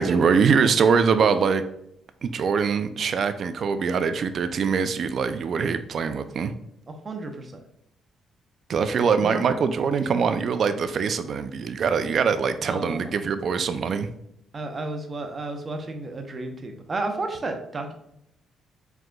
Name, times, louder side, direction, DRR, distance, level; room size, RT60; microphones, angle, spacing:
voice 1, 0.0-1.6 2.2-6.5 8.7-14.1, right 6 dB, 55° right, 10 dB, 0.3 m, -23 dB
voice 2, 6.9-7.6 9.2-9.4 12.6-13.1 14.5-17.9, right 3 dB, 35° right, 5 dB, 0.7 m, -32 dB
4.7 x 3.8 x 2.3 m, 0.78 s
cardioid pair, 90°, 0 cm